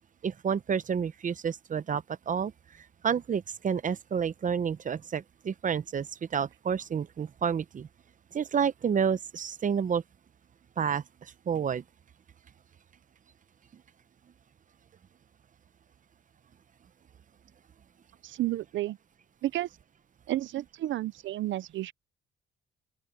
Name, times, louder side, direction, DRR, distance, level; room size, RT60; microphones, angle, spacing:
voice 1, 0.2-2.5 3.0-7.9 8.3-10.0 10.8-11.0 11.5-11.8, right 7 dB, 40° right, 0.8 m, -29 dB
voice 2, 18.2-19.0 19.4-19.7 20.3-21.9, right 15 dB, 75° right, 0.6 m, -31 dB
open air
cardioid pair, 90°, 20 cm